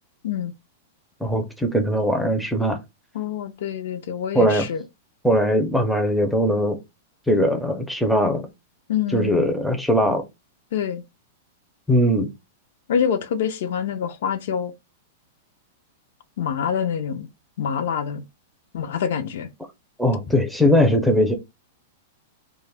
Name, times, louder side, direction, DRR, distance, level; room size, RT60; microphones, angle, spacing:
voice 1, 1.2-2.8 4.3-4.7 5.2-6.8 7.3-8.5 9.1-10.2 11.9-12.3 20.0-21.3, equal, ahead, 0.5 m, -20 dB
voice 2, 3.1-4.8 8.9-9.5 10.7-11.0 12.9-14.7 16.4-17.3 17.6-18.2 18.7-19.5, left 8 dB, 70° left, 0.4 m, -26 dB
2.2 x 2.0 x 3.3 m
hypercardioid pair, 145°, 0 cm